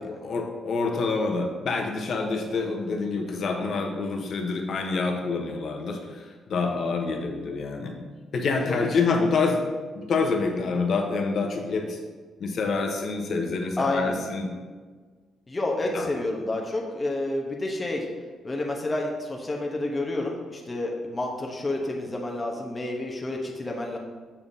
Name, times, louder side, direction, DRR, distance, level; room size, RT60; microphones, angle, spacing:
voice 1, 0.2-8.0 8.3-9.6 9.9-12.0 12.4-14.5 15.9-16.2, left 4 dB, 60° left, 3 dB, 0.9 m, -27 dB
voice 2, 8.6-9.0 10.7-10.9 13.8-14.2 15.5-18.1 18.4-24.0, left 2 dB, 25° left, 0 dB, 0.9 m, -29 dB
7.0 x 5.6 x 2.7 m, 1.5 s
cardioid pair, 90°, 0 cm